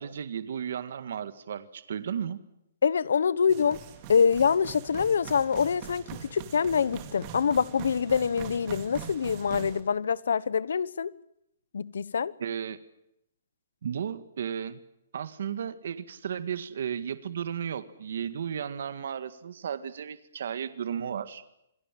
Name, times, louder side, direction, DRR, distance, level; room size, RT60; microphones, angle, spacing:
voice 1, 0.0-2.4 12.4-12.8 13.8-14.8 15.1-21.4, right 8 dB, 60° right, 1.8 m, -34 dB
voice 2, 2.8-3.8 4.1-6.0 6.3-11.1 11.7-12.3, left 6 dB, 80° left, 1.0 m, -25 dB
sound 1, 3.5-9.8, right 8 dB, 25° right, 2.5 m, -42 dB
27.5 x 20.5 x 7.7 m
hypercardioid pair, 170°, 0 cm